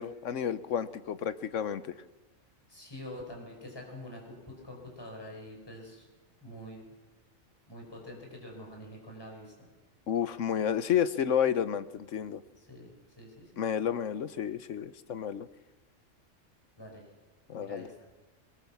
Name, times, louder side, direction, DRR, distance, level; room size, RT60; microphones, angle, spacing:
voice 1, 0.0-1.9 10.1-12.4 13.6-15.5 17.5-17.9, left 8 dB, 75° left, 13 dB, 1.2 m, -31 dB
voice 2, 2.7-6.1 6.4-6.8 7.7-9.5 12.6-13.5 16.8-17.0 17.5-18.1, left 1 dB, 20° left, -1 dB, 5.3 m, -46 dB
22.0 x 21.5 x 7.2 m, 1.2 s
omnidirectional pair, 1.3 m